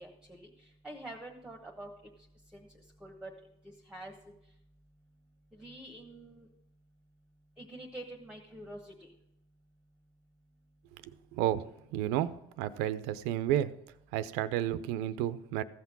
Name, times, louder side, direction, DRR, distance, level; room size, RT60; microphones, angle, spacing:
voice 1, 0.0-1.9 2.5-3.3 3.6-4.1 5.5-6.5 7.6-9.1, right 1 dB, 5° right, 2 dB, 1.1 m, -47 dB
voice 2, 11.9-12.3 12.6-13.7 14.1-15.6, right 12 dB, 85° right, 14 dB, 0.6 m, -31 dB
14.5 x 5.9 x 6.0 m, 0.82 s
cardioid pair, 120°, 17 cm